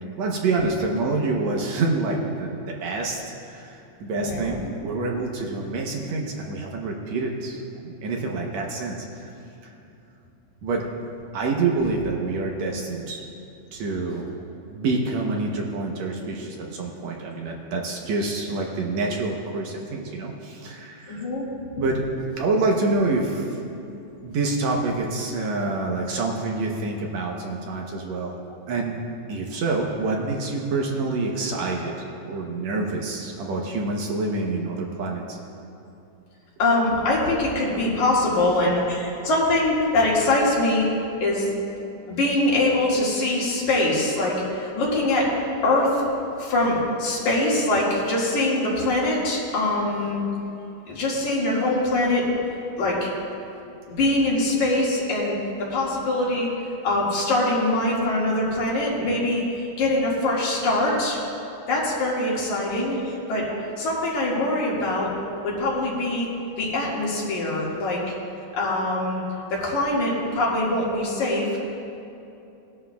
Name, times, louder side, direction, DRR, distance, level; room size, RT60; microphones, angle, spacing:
voice 1, 0.2-3.2 3.4-9.3 9.6-9.7 10.6-10.9 11.3-13.2 13.7-14.3 14.7-21.3 21.8-22.0 22.4-23.6 24.2-28.3 28.7-28.9 29.3-31.9 32.3-35.4, right 3 dB, 70° right, 0 dB, 2.0 m, -27 dB
voice 2, 4.1-4.6 21.1-21.5 21.8-21.9 36.6-40.9 41.2-41.5 42.2-46.0 46.4-50.2 50.9-52.3 52.8-53.1 54.0-56.5 56.8-61.2 61.7-65.1 65.4-66.3 66.6-68.1 68.6-69.2 69.5-71.5, left 2 dB, 70° left, -5 dB, 3.3 m, -23 dB
19.0 x 11.0 x 2.3 m, 2.8 s
omnidirectional pair, 3.5 m